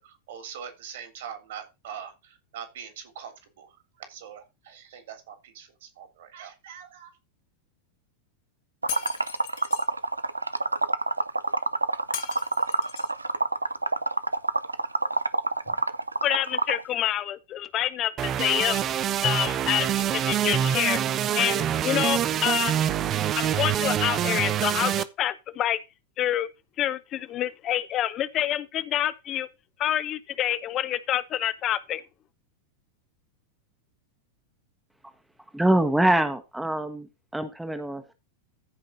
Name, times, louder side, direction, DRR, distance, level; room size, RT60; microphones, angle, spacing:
voice 1, 0.0-3.7 4.0-7.1, right 8 dB, 55° right, 3.3 m, -42 dB
Liquid, 8.8-16.8, right 3 dB, 80° right, 0.6 m, -27 dB
Shatter, 8.9-9.9 12.1-13.2, left 12 dB, 50° left, 1.6 m, -37 dB
voice 2, 16.2-18.8 19.2-21.0 21.4-22.8 23.4-25.8 26.2-26.5 26.8-29.5 29.8-32.0, left 12 dB, 30° left, 0.8 m, -27 dB
sound 1, 18.2-25.0, right 10 dB, 30° right, 0.9 m, -25 dB
voice 3, 35.5-37.1 37.3-38.1, right 1 dB, 5° right, 1.2 m, -24 dB
15.0 x 5.4 x 4.0 m
figure-of-eight pair, 90°, 0 cm